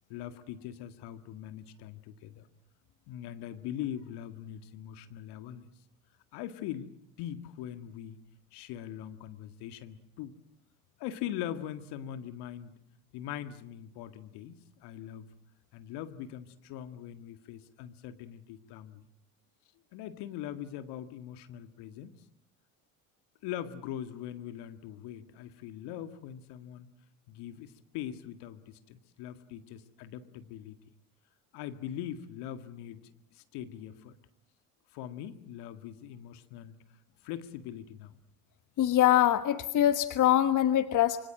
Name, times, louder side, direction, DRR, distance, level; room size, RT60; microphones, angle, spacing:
voice 1, 0.1-2.5 3.1-5.7 6.3-6.9 7.2-8.2 8.5-10.4 11.0-12.7 13.1-15.3 15.7-19.0 19.9-22.2 23.4-26.9 27.3-30.8 31.5-34.1 34.9-36.8 37.2-38.2, left 11 dB, 60° left, 10 dB, 2.0 m, -41 dB
voice 2, 38.8-41.2, left 12 dB, 45° left, 11 dB, 1.4 m, -24 dB
26.0 x 24.5 x 7.6 m, 0.77 s
hypercardioid pair, 70°, 44 cm